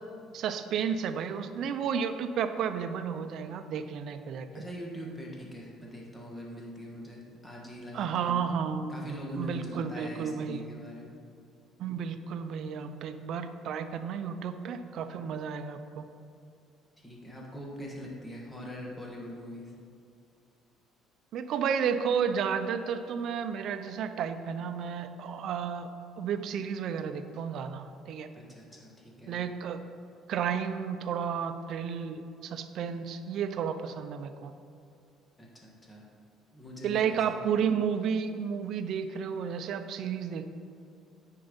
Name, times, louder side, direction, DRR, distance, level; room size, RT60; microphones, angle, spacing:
voice 1, 0.3-4.5 7.9-9.0 9.4-10.6 11.8-16.1 21.3-25.9 26.2-28.3 29.3-29.8 30.3-34.5 36.8-40.5, right 7 dB, 55° right, 9 dB, 0.5 m, -32 dB
voice 2, 4.5-8.4 8.9-11.2 17.0-19.7 28.3-29.4 35.4-36.0 36.5-37.7, equal, 10° left, -2 dB, 1.5 m, -42 dB
9.3 x 4.5 x 5.2 m, 2.5 s
cardioid pair, 135°, 0 cm